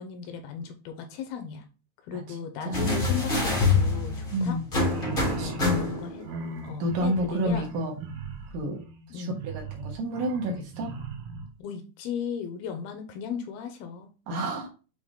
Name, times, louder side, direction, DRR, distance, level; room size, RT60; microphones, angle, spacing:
voice 1, 0.0-1.6 2.1-4.6 5.4-6.2 6.6-7.7 9.1-9.4 11.6-14.5, left 7 dB, 80° left, 6 dB, 2.5 m, -36 dB
voice 2, 2.1-3.0 4.3-4.7 5.4-5.8 6.8-7.9 8.5-8.8 9.1-10.9 14.3-14.7, equal, 65° right, 1 dB, 2.6 m, -30 dB
sound 1, 2.7-6.2 7.4-7.5, left 3 dB, 60° left, 0.5 m, -26 dB
sound 2, 4.7-11.5, right 5 dB, 85° right, 3.2 m, -39 dB
7.9 x 3.4 x 3.7 m, 0.34 s
omnidirectional pair, 4.5 m